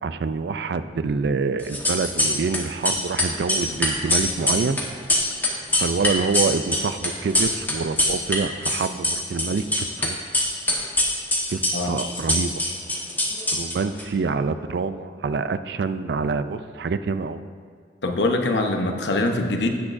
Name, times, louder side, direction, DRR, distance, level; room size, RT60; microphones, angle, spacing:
voice 1, 0.0-4.8 5.8-10.3 11.5-12.6 13.5-17.4, right 4 dB, 65° right, 12 dB, 0.4 m, -26 dB
sound 1, 1.6-2.6 2.8-8.4 8.6-10.1 10.3-14.0, left 1 dB, 10° left, 1.2 m, -23 dB
voice 2, 18.0-19.7, left 2 dB, 75° left, 4 dB, 0.9 m, -23 dB
16.0 x 6.1 x 2.6 m, 2.1 s
head